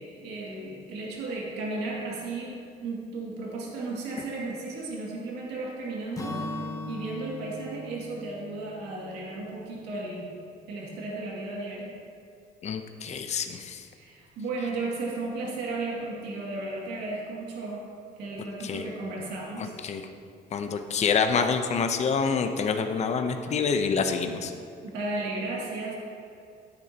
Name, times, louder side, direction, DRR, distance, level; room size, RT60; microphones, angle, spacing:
voice 1, 0.0-2.5 2.8-10.3 10.7-12.0 14.0-17.9 18.2-19.7 24.8-25.9, right 2 dB, 85° right, -3 dB, 2.2 m, -34 dB
Acoustic guitar / Strum, 6.1-10.1, left 1 dB, 20° left, 1.1 m, -39 dB
voice 2, 12.6-13.8 18.6-18.9 19.8-20.0 20.5-24.5, left 5 dB, 40° left, 6 dB, 0.8 m, -27 dB
12.0 x 9.8 x 2.9 m, 2.4 s
cardioid pair, 110°, 17 cm